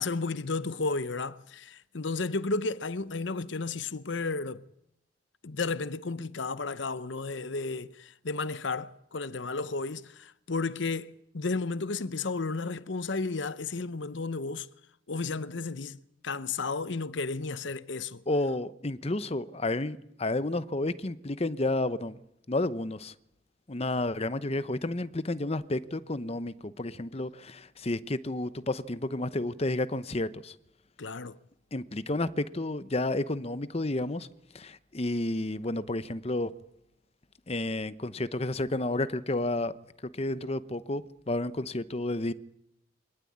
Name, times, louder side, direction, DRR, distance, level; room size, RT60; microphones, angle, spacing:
voice 1, 0.0-4.6 5.4-14.7 15.1-18.2 31.0-31.4, left 3 dB, 65° left, 0.9 m, -33 dB
voice 2, 18.3-22.2 22.5-23.1 23.7-30.5 31.7-34.3 34.5-36.5 37.5-39.7 40.1-42.3, left 2 dB, 30° left, 0.9 m, -31 dB
24.5 x 19.0 x 8.7 m
head